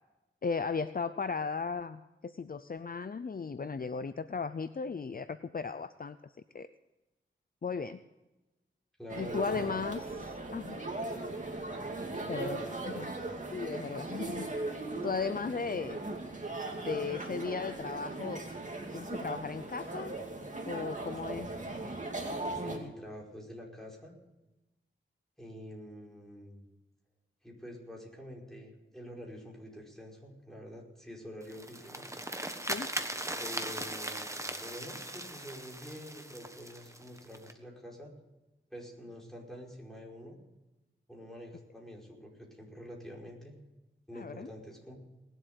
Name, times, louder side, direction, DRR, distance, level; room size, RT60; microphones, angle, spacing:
voice 1, 0.4-6.2 6.5-6.7 7.6-8.0 9.2-10.8 12.3-12.6 12.8-13.1 13.5-14.5 15.0-16.0 16.8-18.4 18.9-20.1 20.6-21.5 32.6-32.9 44.1-44.5, left 5 dB, 45° left, 12 dB, 0.6 m, -36 dB
voice 2, 9.0-9.7 12.0-13.3 22.5-24.1 25.4-26.6 27.4-32.0 32.3-32.6 33.4-38.1 38.7-40.4 41.1-43.5 44.1-45.0, equal, ahead, -2 dB, 5.1 m, -47 dB
sound 1, 9.1-22.8, right 2 dB, 40° right, 2.6 m, -38 dB
sound 2, 31.4-37.5, right 1 dB, 15° right, 1.4 m, -39 dB
19.5 x 8.0 x 8.0 m, 1.0 s
wide cardioid pair, 65°, 20 cm